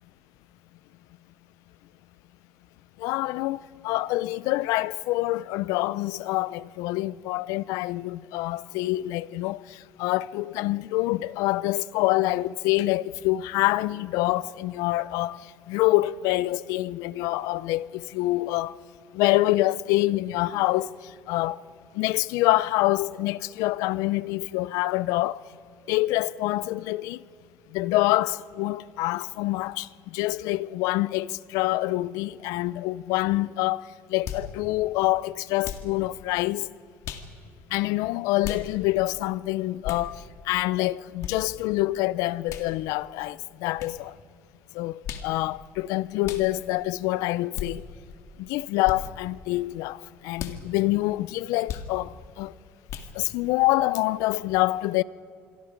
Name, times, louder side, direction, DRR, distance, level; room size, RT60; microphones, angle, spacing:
voice 1, 3.0-9.6 10.0-15.4 15.7-18.7 19.1-20.9 21.3-21.6 22.0-25.4 25.9-27.2 27.7-29.9 30.1-33.8 34.1-36.7 37.7-44.1 44.7-47.8 48.4-52.5 53.2-55.0, left 18 dB, 85° left, 0.5 m, -26 dB
sound 1, 34.2-34.5 35.6-35.9 37.0-37.3 38.4-38.6 39.8-40.1 41.2-41.3 42.5-42.7 43.8-43.9 45.0-45.3 46.2-46.5 47.5-47.7 48.8-49.0 50.3-50.6 51.7-51.9 52.9-53.1, left 9 dB, 65° left, 2.0 m, -34 dB
27.5 x 23.0 x 5.1 m
cardioid pair, 130°, 6 cm